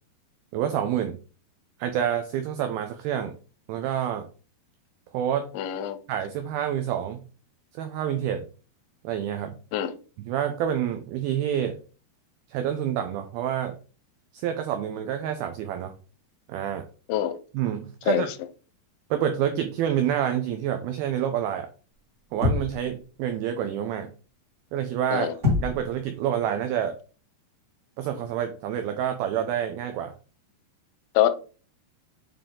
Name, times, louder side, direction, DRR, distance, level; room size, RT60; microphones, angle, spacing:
voice 1, 0.5-1.2 1.8-3.3 3.7-4.3 5.1-5.5 6.1-7.2 7.8-8.4 9.0-9.6 10.2-11.8 12.5-13.8 14.3-15.9 16.5-16.8 17.5-18.3 19.1-21.7 22.3-24.1 24.7-27.0 28.0-30.1, right 9 dB, 90° right, 6 dB, 2.1 m, -28 dB
voice 2, 5.5-6.0 9.7-10.0 17.1-17.4 18.1-18.2 25.1-25.3 31.2-31.3, left 12 dB, 90° left, 11 dB, 3.1 m, -24 dB
sound 1, 22.4-22.9 25.4-26.0, left 4 dB, 50° right, 0.8 m, -25 dB
9.0 x 3.5 x 3.7 m, 0.37 s
omnidirectional pair, 5.1 m